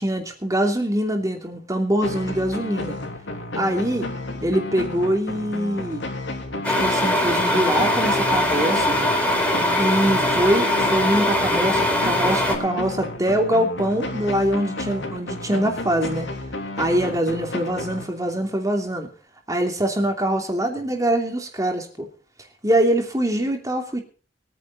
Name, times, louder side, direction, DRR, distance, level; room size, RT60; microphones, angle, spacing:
voice 1, 0.0-3.0 3.6-4.1 4.4-6.0 6.7-9.0 9.8-16.3 16.8-19.1 19.5-22.1 22.6-24.0, right 1 dB, 20° right, 3 dB, 2.8 m, -23 dB
sound 1, 2.0-18.5, left 2 dB, 85° left, 3.3 m, -32 dB
sound 2, 6.6-12.6, left 1 dB, 5° left, 3.8 m, -21 dB
21.5 x 10.0 x 4.1 m, 0.40 s
head